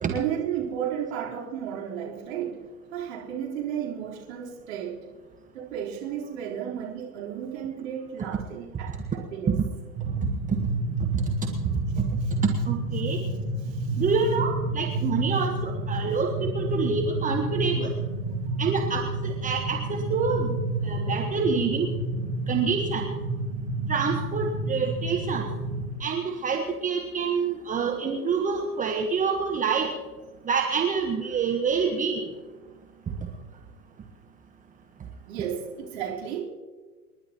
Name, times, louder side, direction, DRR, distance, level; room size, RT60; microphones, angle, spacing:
voice 1, 0.1-5.1 5.5-9.6 13.9-14.0 35.3-36.4, right 9 dB, 60° right, -3 dB, 4.0 m, -33 dB
sound 1, 9.9-25.9, right 2 dB, 40° right, 3.2 m, -30 dB
voice 2, 12.0-13.2 14.0-17.9 18.6-20.5 20.8-21.9 22.5-23.1 23.9-25.5 26.0-29.9 30.4-32.2 33.2-33.3, right 5 dB, 15° right, 2 dB, 1.2 m, -27 dB
29.0 x 11.0 x 3.0 m, 1.4 s
hypercardioid pair, 105°, 46 cm